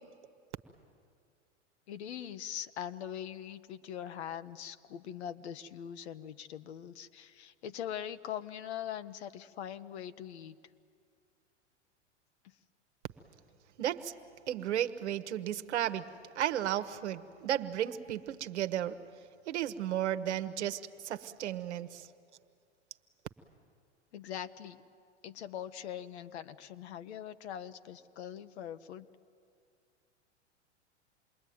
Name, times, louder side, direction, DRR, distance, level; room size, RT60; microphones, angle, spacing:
voice 1, 1.9-10.6 24.1-24.8 25.2-29.1, left 9 dB, 65° left, 11 dB, 1.2 m, -42 dB
voice 2, 13.8-14.1 14.5-16.1 16.3-19.0 19.5-22.1, right 11 dB, 70° right, 10 dB, 1.3 m, -34 dB
27.5 x 21.5 x 9.5 m, 2.3 s
hypercardioid pair, 100°, 35 cm